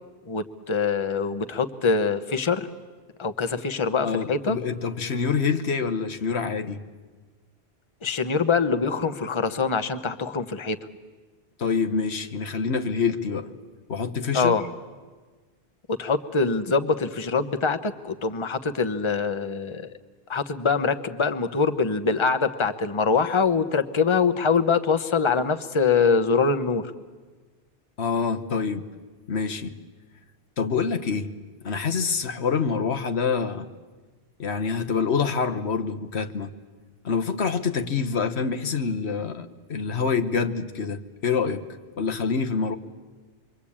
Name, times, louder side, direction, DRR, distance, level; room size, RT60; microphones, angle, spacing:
voice 1, 0.3-2.7 3.2-4.6 8.0-10.8 14.3-14.6 16.0-19.9 20.3-26.9, left 5 dB, 30° left, 9 dB, 1.0 m, -24 dB
voice 2, 4.0-6.8 11.6-13.5 13.9-14.6 28.0-28.9 29.3-29.7 30.6-31.3 31.6-33.7 34.4-36.5 37.0-41.6 41.9-42.8, left 5 dB, 85° left, 6 dB, 1.4 m, -26 dB
27.0 x 23.5 x 8.7 m, 1.4 s
omnidirectional pair, 1.1 m